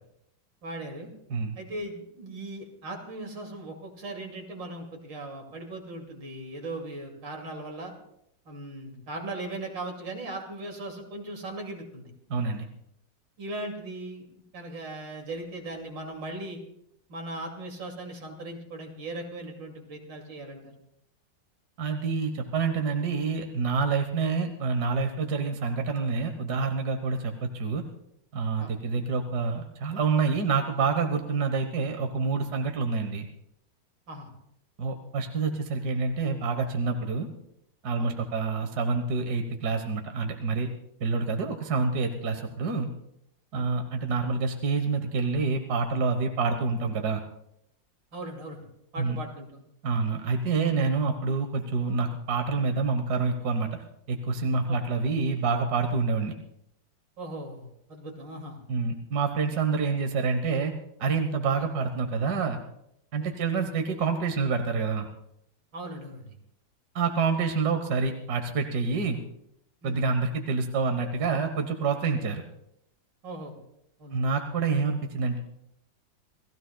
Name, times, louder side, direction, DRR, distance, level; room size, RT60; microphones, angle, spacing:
voice 1, 0.6-1.1 1.6-7.9 8.4-12.1 13.4-14.3 14.5-16.6 17.1-20.7 28.6-28.7 34.1-34.3 38.0-38.2 43.5-43.7 48.1-48.6 48.9-49.6 54.7-54.8 57.2-58.6 61.5-61.6 63.2-63.4 65.7-66.3 69.8-70.1 73.2-73.6 74.0-74.2, right 2 dB, 75° right, 2 dB, 3.1 m, -38 dB
voice 2, 12.3-12.6 21.8-27.8 28.3-33.3 34.8-37.3 37.8-40.7 41.0-42.9 43.5-47.2 49.0-49.2 49.8-53.7 54.1-56.3 58.7-60.7 61.0-62.6 63.1-65.1 66.9-69.2 69.8-72.4 74.1-75.4, right 4 dB, 60° right, 5 dB, 1.7 m, -27 dB
28.5 x 15.5 x 2.2 m, 0.76 s
omnidirectional pair, 2.0 m